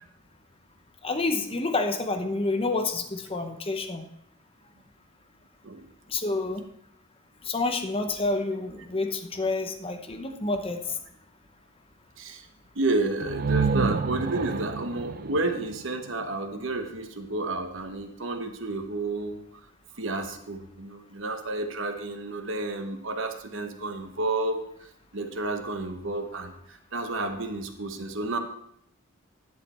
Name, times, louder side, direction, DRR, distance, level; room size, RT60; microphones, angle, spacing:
voice 1, 1.0-4.1 6.1-6.6 7.5-10.9, left 3 dB, 25° left, 5 dB, 0.8 m, -28 dB
voice 2, 12.7-19.6 19.9-28.4, right 2 dB, 60° right, 6 dB, 1.0 m, -31 dB
sound 1, 13.2-16.9, right 5 dB, 45° right, 0.3 m, -29 dB
10.5 x 6.6 x 4.2 m, 0.74 s
head